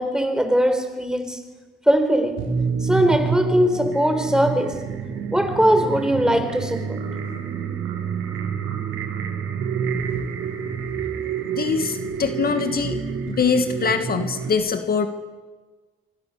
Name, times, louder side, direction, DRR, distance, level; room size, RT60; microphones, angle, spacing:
voice 1, 0.0-1.4 1.9-2.4 2.8-4.8 5.3-7.0, equal, 5° right, 7 dB, 4.5 m, -20 dB
sound 1, 2.4-14.5, right 6 dB, 85° right, 4.1 m, -28 dB
voice 2, 11.5-13.0 13.3-15.1, left 5 dB, 50° left, 7 dB, 2.1 m, -23 dB
27.0 x 24.5 x 6.9 m, 1.3 s
cardioid pair, 90°, 20 cm